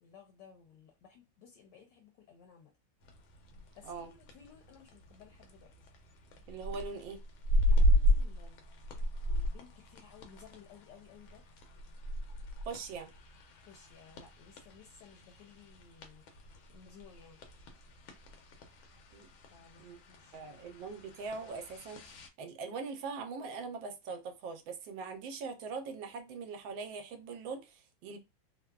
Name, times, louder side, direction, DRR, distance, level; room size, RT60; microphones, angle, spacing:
voice 1, 0.0-2.7 3.8-5.9 7.7-8.6 9.0-11.4 13.6-16.4 16.7-17.4 19.5-20.5, left 7 dB, 70° left, 1.1 m, -57 dB
sound 1, 3.0-22.3, equal, 85° left, 1.5 m, -35 dB
voice 2, 6.5-7.2 12.7-13.1 19.1-19.3 19.8-20.0 20.3-28.2, right 4 dB, 80° right, 1.3 m, -42 dB
3.5 x 2.0 x 2.3 m
omnidirectional pair, 2.2 m